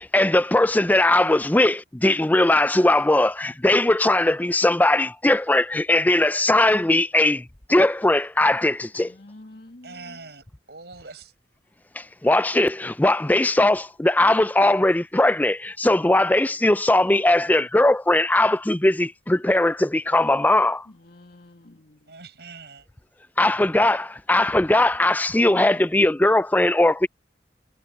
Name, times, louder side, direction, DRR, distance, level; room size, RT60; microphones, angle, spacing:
voice 1, 0.1-9.1 12.0-20.9 23.4-27.1, left 1 dB, 10° left, 0.5 m, -19 dB
voice 2, 8.9-10.2 20.9-22.1, left 1 dB, 60° left, 2.5 m, -48 dB
voice 3, 9.8-11.3 22.1-22.8, right 4 dB, 65° right, 7.1 m, -43 dB
head